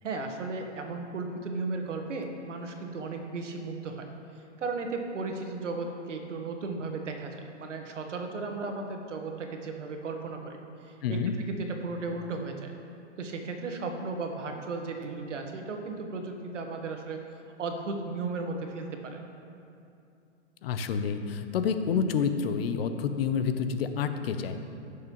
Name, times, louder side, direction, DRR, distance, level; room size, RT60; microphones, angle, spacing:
voice 1, 0.0-4.0 4.3-11.2 11.5-12.7 13.2-17.2 17.6-19.2, right 3 dB, 85° right, 4 dB, 1.4 m, -35 dB
voice 2, 11.0-11.3 20.6-24.8, left 6 dB, 55° left, 9 dB, 0.7 m, -29 dB
15.5 x 6.5 x 3.1 m, 2.6 s
hypercardioid pair, 145°, 36 cm